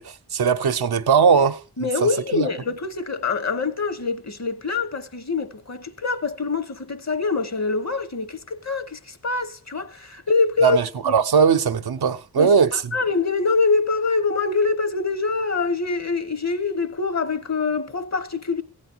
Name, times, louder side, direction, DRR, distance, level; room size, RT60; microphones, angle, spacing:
voice 1, 0.0-1.6 2.3-2.5 10.6-12.8, right 6 dB, 75° right, 0.8 m, -19 dB
voice 2, 1.8-10.8 11.0-11.1 12.4-12.5 12.9-18.6, left 4 dB, 45° left, 1.1 m, -24 dB
15.0 x 8.9 x 4.5 m
cardioid pair, 45°, 38 cm